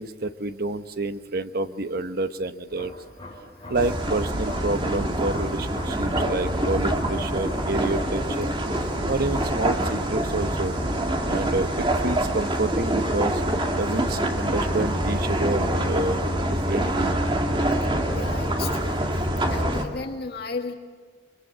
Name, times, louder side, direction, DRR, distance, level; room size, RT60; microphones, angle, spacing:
voice 1, 0.0-2.9 3.7-10.7 11.3-13.4 13.7-17.1, right 2 dB, 60° right, 9 dB, 1.1 m, -29 dB
sound 1, 2.7-19.7, left 1 dB, 25° left, 6.8 m, -44 dB
sound 2, 3.7-19.8, right 1 dB, 30° right, 2.4 m, -25 dB
voice 2, 18.1-19.2 19.5-20.7, left 4 dB, 65° left, 4 dB, 1.8 m, -34 dB
30.0 x 23.5 x 7.5 m, 1.5 s
head